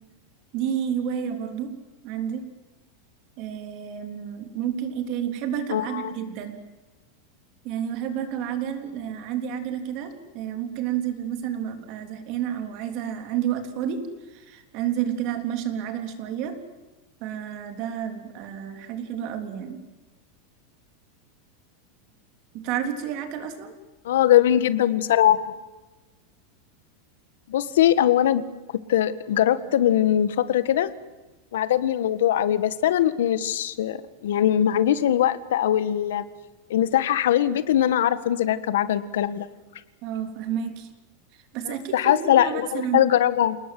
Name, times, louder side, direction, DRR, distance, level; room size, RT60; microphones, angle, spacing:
voice 1, 0.5-1.7 2.0-2.5 3.4-6.6 7.6-14.0 14.3-16.6 17.2-19.8 22.5-23.7 40.0-40.9 41.5-43.1, right 9 dB, 40° right, 7 dB, 3.4 m, -30 dB
voice 2, 5.7-6.1 24.1-25.5 27.5-28.4 28.9-30.9 31.5-36.2 36.7-39.5 41.7-43.6, left 11 dB, 90° left, 13 dB, 1.6 m, -21 dB
29.0 x 19.5 x 7.8 m, 1.2 s
supercardioid pair, 170°, 0 cm